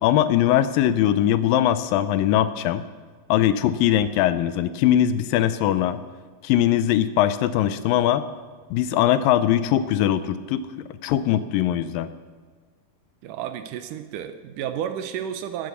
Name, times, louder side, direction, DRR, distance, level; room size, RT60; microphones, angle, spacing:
voice 1, 0.0-2.8 3.3-6.0 6.4-8.3 8.7-12.1, left 11 dB, 80° left, 13 dB, 2.2 m, -21 dB
voice 2, 13.2-15.7, right 9 dB, 75° right, 10 dB, 2.0 m, -31 dB
13.0 x 9.3 x 8.2 m, 1.5 s
omnidirectional pair, 4.2 m